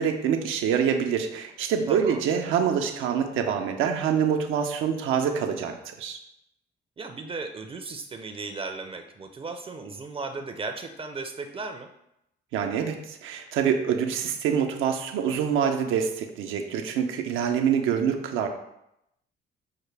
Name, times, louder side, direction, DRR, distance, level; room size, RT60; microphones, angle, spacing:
voice 1, 0.0-6.2 12.5-18.5, right 7 dB, 90° right, 4 dB, 0.5 m, -26 dB
voice 2, 1.9-2.2 7.0-11.9, right 3 dB, 30° right, 6 dB, 0.4 m, -36 dB
5.7 x 2.2 x 3.2 m, 0.81 s
cardioid pair, 90°, 20 cm